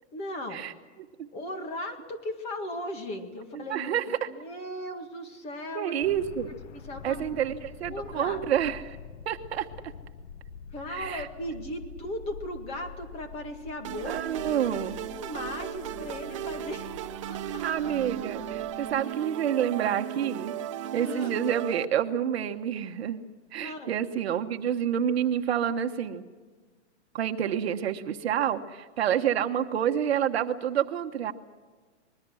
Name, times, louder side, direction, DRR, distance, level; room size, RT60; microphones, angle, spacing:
voice 1, 0.1-0.6 1.3-6.0 6.7-7.2 7.9-8.4 10.7-14.6 15.1-16.9 17.3-17.6 21.0-21.3 23.6-23.9, left 1 dB, 15° left, 5 dB, 1.9 m, -37 dB
voice 2, 3.5-4.3 5.7-6.5 7.0-9.0 9.3-9.7 10.9-11.3 14.0-15.0 17.6-20.5 20.9-23.2 23.5-26.2 27.1-31.3, right 9 dB, 60° right, 7 dB, 1.3 m, -28 dB
sound 1, 6.0-19.0, left 6 dB, 85° left, 1.6 m, -46 dB
sound 2, 13.8-21.8, right 11 dB, 25° right, 0.6 m, -36 dB
25.5 x 21.5 x 6.3 m, 1.4 s
hypercardioid pair, 170°, 35 cm